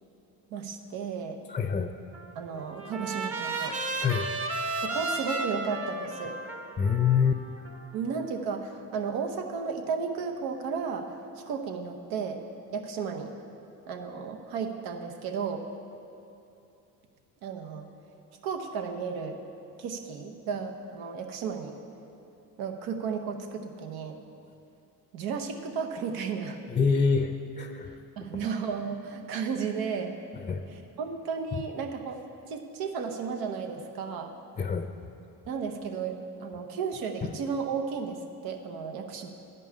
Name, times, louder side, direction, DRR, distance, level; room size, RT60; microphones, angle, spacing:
voice 1, 0.5-1.4 2.3-3.8 4.8-6.4 7.9-12.4 12.7-13.3 13.9-15.7 17.4-17.9 18.4-19.4 19.8-21.8 22.6-24.2 25.1-26.6 27.8-30.2 30.7-32.2 32.5-34.3 35.5-39.3, right 6 dB, 90° right, 5 dB, 0.9 m, -34 dB
voice 2, 1.5-1.9 4.0-4.3 6.8-7.4 26.7-28.3 30.4-30.7 34.6-34.9 37.2-37.3, left 6 dB, 20° left, 6 dB, 0.5 m, -26 dB
Trumpet, 2.1-8.3, right 2 dB, 40° right, 1.2 m, -34 dB
11.0 x 5.4 x 8.5 m, 2.7 s
cardioid pair, 85°, 35 cm